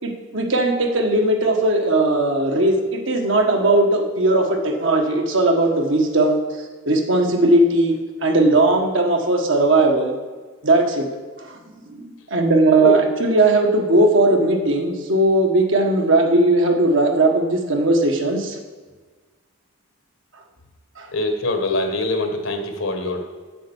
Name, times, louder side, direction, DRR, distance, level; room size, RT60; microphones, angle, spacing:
voice 1, 0.0-6.4 6.8-10.1 10.6-11.1 11.4-11.6 11.9-18.6 21.0-21.1, right 2 dB, 60° right, 2 dB, 1.4 m, -18 dB
voice 2, 21.1-23.3, left 2 dB, 70° left, 5 dB, 1.5 m, -23 dB
8.0 x 7.6 x 7.1 m, 1.4 s
head